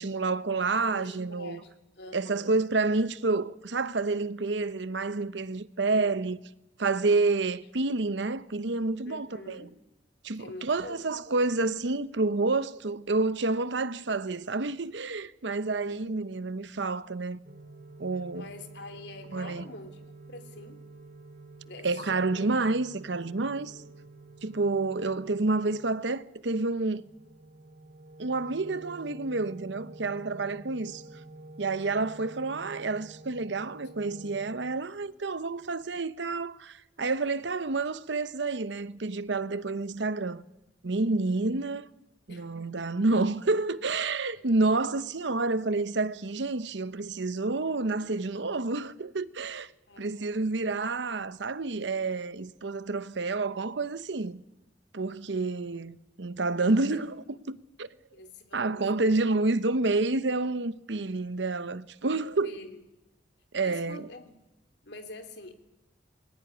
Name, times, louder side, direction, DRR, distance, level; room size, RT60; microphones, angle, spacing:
voice 1, 0.0-1.6 2.1-6.4 6.8-9.7 10.2-17.4 18.0-18.4 19.3-19.6 21.8-23.8 24.4-27.1 28.2-31.0 31.6-40.4 40.8-41.9 42.3-49.7 50.0-54.4 54.9-57.9 58.5-62.6 63.5-64.1, right 3 dB, 75° right, 0.9 m, -29 dB
voice 2, 0.8-1.7 2.0-2.6 5.9-6.2 9.0-9.7 10.4-11.0 15.8-16.1 18.3-20.8 21.6-22.5 42.3-42.5 44.3-44.6 49.9-50.1 56.9-57.0 58.1-59.2 62.1-62.8 63.6-64.4 64.8-65.5, left 2 dB, 70° left, 2.9 m, -46 dB
sound 1, 17.4-34.7, right 2 dB, 50° right, 2.0 m, -49 dB
21.5 x 17.0 x 9.9 m
head